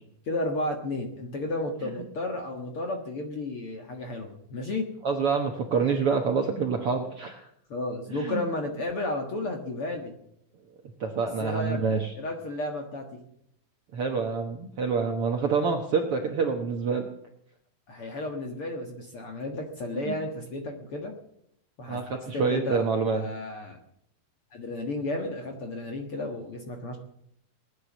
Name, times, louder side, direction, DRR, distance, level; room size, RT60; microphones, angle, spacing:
voice 1, 0.3-4.8 7.7-10.1 11.4-11.8 12.2-13.1 17.9-21.1 21.8-22.0 22.3-22.9 23.1-23.8 24.5-27.0, left 2 dB, 50° left, 3 dB, 1.8 m, -33 dB
voice 2, 5.0-7.5 8.1-8.4 11.0-12.1 13.9-17.1 19.9-20.1 21.9-23.3, right 5 dB, 60° right, 3 dB, 1.5 m, -27 dB
19.5 x 9.8 x 7.3 m, 0.73 s
omnidirectional pair, 4.2 m